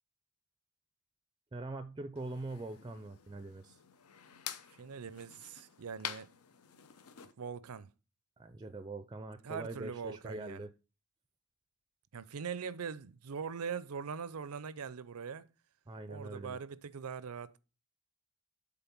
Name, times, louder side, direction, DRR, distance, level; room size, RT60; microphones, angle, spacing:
voice 1, 1.5-3.8 8.4-10.7 15.9-16.6, right 2 dB, 20° right, 0.4 m, -43 dB
sound 1, 2.2-7.3, left 9 dB, 85° left, 0.8 m, -48 dB
voice 2, 4.8-6.3 7.4-7.9 9.4-10.7 12.1-15.5 16.1-17.6, right 6 dB, 80° right, 0.6 m, -42 dB
7.8 x 3.7 x 5.9 m
head